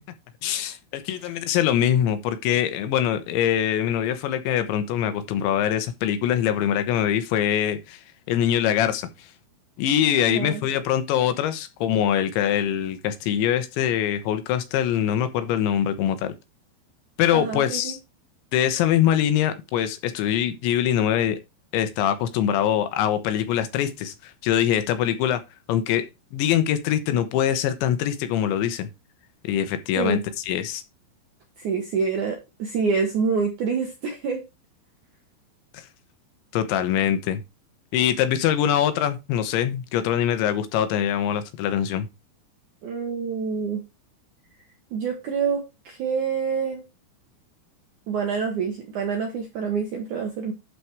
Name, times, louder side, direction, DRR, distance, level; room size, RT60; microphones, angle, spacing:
voice 1, 0.4-8.0 8.3-9.3 9.8-16.3 17.2-18.0 18.5-21.4 21.7-25.4 25.7-28.9 29.4-30.8 35.7-35.9 36.5-37.4 37.9-42.1, left 10 dB, 80° left, 3.2 m, -23 dB
voice 2, 10.2-10.6 17.3-18.0 30.0-30.2 31.6-34.4 42.8-43.8 44.9-46.8 48.1-50.5, right 5 dB, 70° right, 1.9 m, -27 dB
11.5 x 4.3 x 4.6 m
omnidirectional pair, 5.3 m